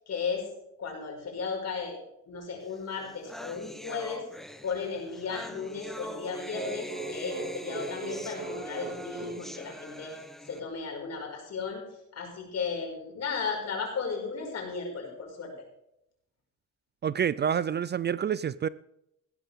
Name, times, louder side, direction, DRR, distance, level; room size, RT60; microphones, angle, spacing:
voice 1, 0.1-0.5 0.8-2.0 2.3-4.2 4.6-10.1 10.5-11.8 12.1-15.5, left 5 dB, 55° left, 5.6 m, -35 dB
sound 1, 2.7-2.8 3.0-10.6, equal, ahead, 1.2 m, -43 dB
sound 2, 6.5-10.2, right 3 dB, 70° right, 3.9 m, -40 dB
voice 2, 17.0-18.7, right 8 dB, 35° right, 0.4 m, -28 dB
16.0 x 12.0 x 3.6 m
cardioid pair, 90°, 30 cm